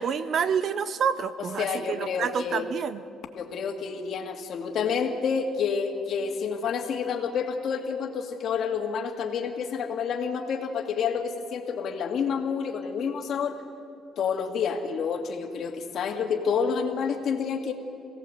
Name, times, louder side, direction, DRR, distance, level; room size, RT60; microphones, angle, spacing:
voice 1, 0.0-3.0, right 7 dB, 50° right, 14 dB, 0.8 m, -28 dB
voice 2, 1.6-2.6 3.4-13.6 14.2-17.7, left 6 dB, 60° left, 3 dB, 2.3 m, -29 dB
27.0 x 17.5 x 8.0 m, 2.5 s
cardioid pair, 125°, 0 cm